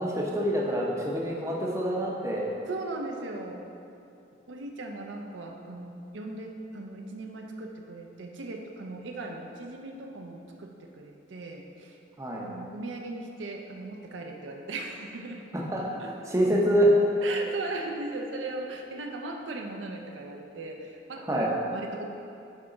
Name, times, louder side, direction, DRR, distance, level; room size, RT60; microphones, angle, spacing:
voice 1, 0.0-2.5 12.2-12.5 15.5-17.0 21.3-21.5, equal, 15° right, -3 dB, 0.7 m, -26 dB
voice 2, 2.7-3.6 4.5-12.0 12.3-15.4 16.0-16.1 17.2-22.2, right 2 dB, 80° right, 2 dB, 0.6 m, -38 dB
9.0 x 3.5 x 3.8 m, 2.7 s
head